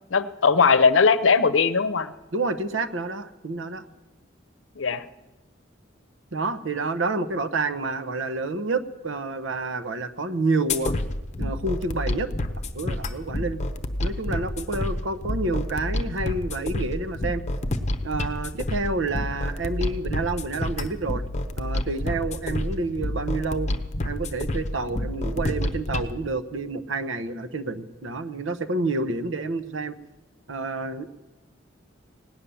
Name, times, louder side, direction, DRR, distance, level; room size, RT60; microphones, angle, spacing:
voice 1, 0.1-2.1 4.8-5.0, left 5 dB, 90° left, 13 dB, 0.7 m, -19 dB
voice 2, 2.3-3.8 6.3-10.9 11.4-12.3 12.7-13.6 14.0-17.4 18.0-21.2 21.6-23.7 24.0-30.0 30.5-31.1, right 3 dB, 85° right, 11 dB, 0.9 m, -28 dB
sound 1, 10.7-26.1, left 1 dB, 40° left, 0.8 m, -29 dB
17.0 x 10.0 x 7.0 m, 1.1 s
head